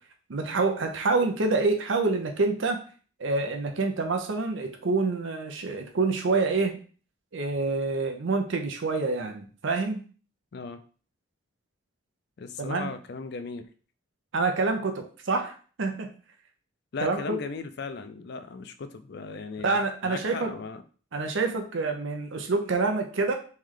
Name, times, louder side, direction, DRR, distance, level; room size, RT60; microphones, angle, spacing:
voice 1, 0.3-2.8 3.2-6.8 7.3-10.0 12.6-12.9 14.3-16.1 17.0-17.4 19.6-20.5 21.1-23.3, right 3 dB, 70° right, 5 dB, 0.6 m, -27 dB
voice 2, 12.4-13.6 16.9-19.8 20.0-20.8, left 4 dB, 55° left, 9 dB, 0.4 m, -37 dB
3.2 x 3.1 x 3.7 m, 0.40 s
head